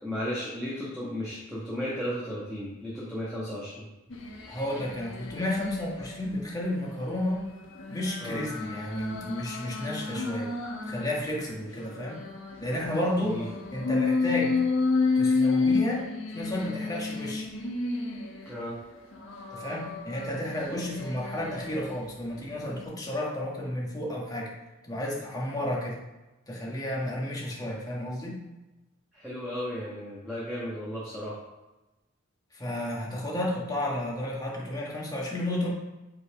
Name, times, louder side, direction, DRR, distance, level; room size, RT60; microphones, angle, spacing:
voice 1, 0.0-3.9 8.2-8.4 13.2-13.5 18.5-18.8 29.1-31.4, equal, ahead, -9 dB, 1.9 m, -34 dB
sound 1, 4.1-6.2 6.6-11.1 11.6-18.6 19.1-22.0 22.5-22.8, left 4 dB, 65° left, 1.3 m, -31 dB
voice 2, 4.5-7.4 7.9-10.5 10.9-12.2 12.6-13.4 13.7-14.6 15.2-16.1 16.3-17.5 19.5-24.5 24.8-26.0 26.5-28.4 32.5-35.7, left 1 dB, 20° left, -3 dB, 1.8 m, -32 dB
8.8 x 4.7 x 5.1 m, 1.0 s
head